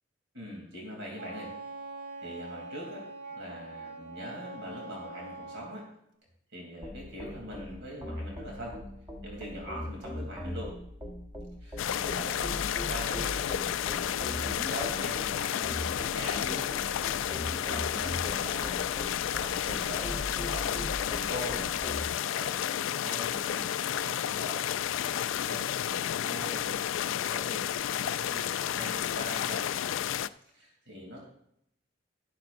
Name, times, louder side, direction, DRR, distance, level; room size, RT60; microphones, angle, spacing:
voice 1, 0.3-1.5 2.2-5.9 6.5-8.8 9.2-10.7 11.6-16.9 17.3-18.9 19.4-20.2 20.5-21.7 22.2-24.7 25.1-25.6 25.9-27.6 28.1-29.6 30.5-31.2, equal, 75° right, -2 dB, 2.9 m, -42 dB
Wind instrument woodwind instrument, 1.2-5.8, right 3 dB, 45° right, 1.3 m, -43 dB
sound 1, 6.8-22.1, equal, 15° right, 1.2 m, -40 dB
sound 2, 11.8-30.3, left 10 dB, 85° left, 0.3 m, -31 dB
12.0 x 12.0 x 2.5 m, 0.75 s
head